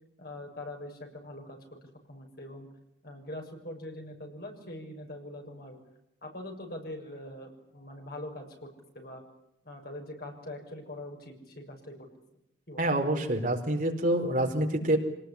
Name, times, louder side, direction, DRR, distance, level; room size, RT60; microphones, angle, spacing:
voice 1, 0.2-1.6 2.1-2.7 3.0-5.8 6.2-8.7 8.9-9.2 9.6-12.1 12.7-12.8, left 1 dB, 55° left, 2 dB, 6.5 m, -42 dB
voice 2, 12.8-15.0, right 1 dB, 45° right, 3 dB, 4.5 m, -27 dB
26.0 x 19.5 x 10.0 m, 0.79 s
head